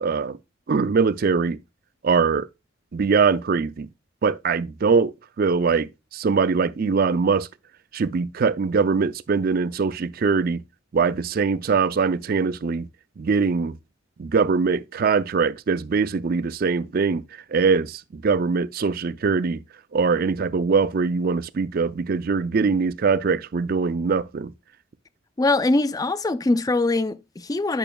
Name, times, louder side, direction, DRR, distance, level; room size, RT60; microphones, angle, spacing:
voice 1, 0.0-0.4 0.7-1.6 2.0-2.5 2.9-3.9 4.2-7.5 7.9-10.6 10.9-12.9 13.2-13.8 14.2-17.2 17.5-19.6 19.9-24.5, right 5 dB, 50° right, 0.4 m, -22 dB
voice 2, 25.4-27.8, left 2 dB, 20° left, 0.3 m, -22 dB
8.9 x 5.9 x 2.3 m
head